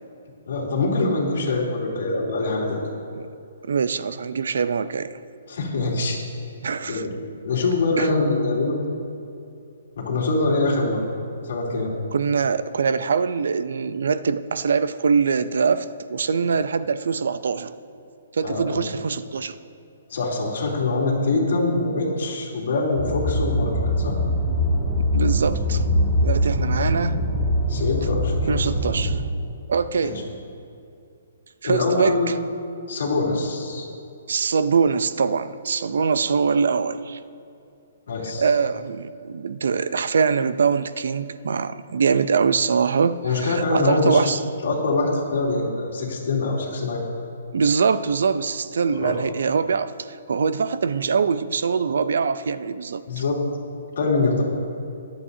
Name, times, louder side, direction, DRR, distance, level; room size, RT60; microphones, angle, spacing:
voice 1, 0.5-2.8 5.5-6.2 6.9-7.1 7.4-8.8 9.9-11.0 11.4-11.9 18.4-18.8 20.1-24.2 27.7-28.4 30.0-30.1 31.6-32.3 32.9-33.9 38.1-38.5 43.2-44.2 44.6-47.0 48.9-49.1 53.1-53.4 54.0-54.4, left 3 dB, 60° left, -3 dB, 3.1 m, -24 dB
voice 2, 3.6-5.1 6.6-7.1 8.0-8.1 12.1-17.7 18.3-19.6 25.1-25.8 26.2-27.2 28.5-29.2 29.7-30.2 31.6-32.3 34.3-37.2 38.4-44.4 47.5-53.0, right 5 dB, 70° right, 14 dB, 0.5 m, -23 dB
sound 1, 23.0-29.2, equal, ahead, 2.2 m, -22 dB
23.0 x 8.5 x 2.8 m, 2.6 s
hypercardioid pair, 170°, 0 cm